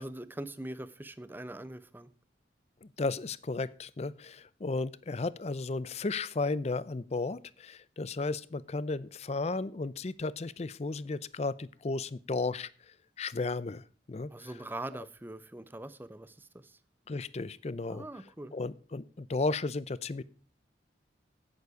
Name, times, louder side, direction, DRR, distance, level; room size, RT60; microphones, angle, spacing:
voice 1, 0.0-2.1 14.3-16.8 17.9-18.5, right 1 dB, 10° right, 15 dB, 0.6 m, -42 dB
voice 2, 2.8-14.5 17.1-18.0 18.5-20.2, left 3 dB, 35° left, 18 dB, 0.5 m, -34 dB
9.5 x 9.4 x 4.8 m, 0.40 s
head